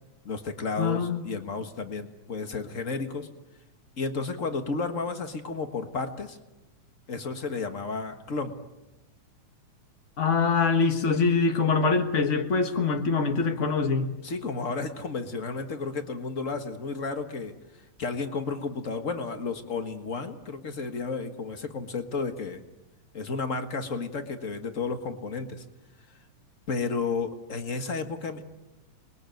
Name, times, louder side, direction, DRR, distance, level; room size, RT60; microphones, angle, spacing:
voice 1, 0.2-3.3 4.0-6.4 7.1-8.5 14.2-17.5 18.0-22.6 23.1-25.6 26.7-28.4, left 4 dB, 50° left, 7 dB, 0.9 m, -32 dB
voice 2, 0.8-1.3 10.2-14.1, left 4 dB, 75° left, 6 dB, 0.6 m, -24 dB
29.0 x 21.5 x 9.2 m, 1.0 s
omnidirectional pair, 3.7 m